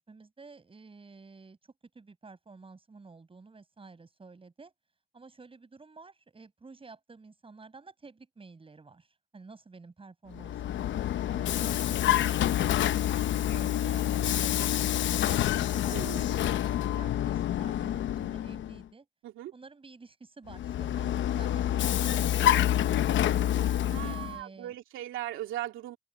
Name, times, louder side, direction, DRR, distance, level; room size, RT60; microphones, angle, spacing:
voice 1, 0.0-1.6 1.9-4.7 5.1-11.6 12.3-15.3 15.5-19.1 19.5-23.1 24.0-24.8, right 4 dB, 25° right, 6.5 m, -51 dB
Vehicle, 10.3-18.8 20.5-24.4, left 12 dB, 70° left, 0.9 m, -27 dB
voice 2, 23.9-26.0, right 13 dB, 90° right, 2.6 m, -38 dB
open air
cardioid pair, 90°, 20 cm